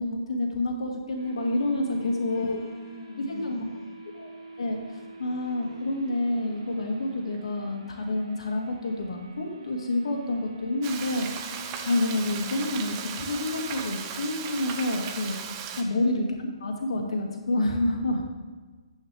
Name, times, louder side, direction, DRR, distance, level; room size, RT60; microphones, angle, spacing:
voice 1, 0.0-2.6 3.3-3.6 4.1-4.3 4.6-4.8 5.2-11.3 11.8-18.2, left 2 dB, 75° left, 1 dB, 2.3 m, -28 dB
sound 1, 1.2-13.7, right 1 dB, 80° right, 2.5 m, -46 dB
voice 2, 2.3-4.1 5.2-5.7 15.9-16.0, left 3 dB, 50° left, 2 dB, 2.0 m, -42 dB
Frying (food), 10.8-15.8, right 7 dB, 25° right, 0.8 m, -36 dB
11.0 x 8.8 x 3.5 m, 1.4 s
hypercardioid pair, 165°, 3 cm